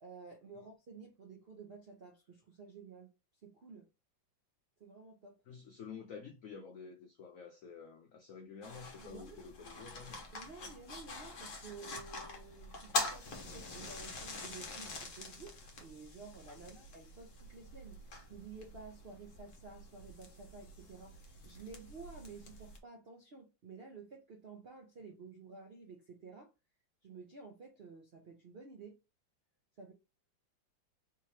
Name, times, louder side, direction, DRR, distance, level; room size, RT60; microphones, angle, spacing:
voice 1, 0.0-3.1 3.4-3.9 4.8-5.4 9.0-9.4 10.3-26.5 27.0-29.0 29.8-29.9, right 4 dB, 65° right, 0.5 m, -52 dB
voice 2, 5.5-10.2 16.6-16.7, left 6 dB, 80° left, 0.7 m, -50 dB
sound 1, 8.6-22.8, left 2 dB, 50° left, 1.1 m, -45 dB
3.6 x 2.9 x 3.2 m
omnidirectional pair, 2.0 m